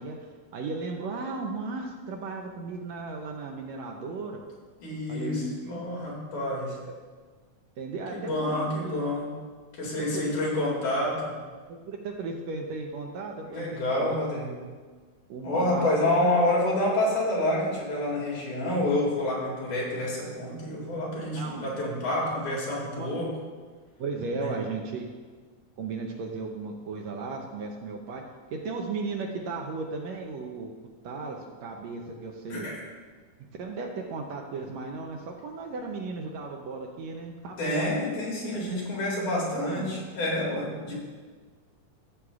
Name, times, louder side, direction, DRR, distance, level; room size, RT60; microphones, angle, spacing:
voice 1, 0.0-4.4 5.1-5.8 7.8-9.0 10.0-10.4 11.7-14.2 15.3-16.2 21.3-21.7 22.2-22.3 22.9-23.1 24.0-25.1 25.8-28.2 28.5-30.7 31.0-32.7 33.6-37.9 39.5-39.8, right 3 dB, 75° right, 1 dB, 1.7 m, -35 dB
voice 2, 4.8-6.8 8.1-9.3 9.7-11.4 13.4-14.5 15.4-23.3 24.4-24.6 32.5-32.8 37.6-40.9, left 1 dB, 70° left, -4 dB, 3.6 m, -28 dB
14.5 x 7.8 x 2.4 m, 1.5 s
omnidirectional pair, 3.7 m